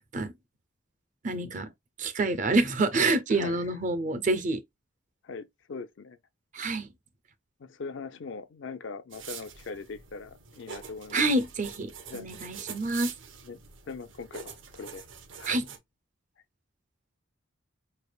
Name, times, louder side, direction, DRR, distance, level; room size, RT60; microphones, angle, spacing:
voice 1, 1.2-1.7 2.0-4.6 6.5-6.9 11.1-13.1 15.5-15.6, right 2 dB, 40° right, 0.5 m, -27 dB
voice 2, 3.3-3.7 5.2-6.2 7.6-11.2 12.1-12.3 13.5-13.6 13.9-15.0 15.4-15.6, left 4 dB, 65° left, 0.5 m, -41 dB
sound 1, 9.1-15.8, right 7 dB, 70° right, 0.8 m, -45 dB
4.8 x 3.3 x 2.2 m
head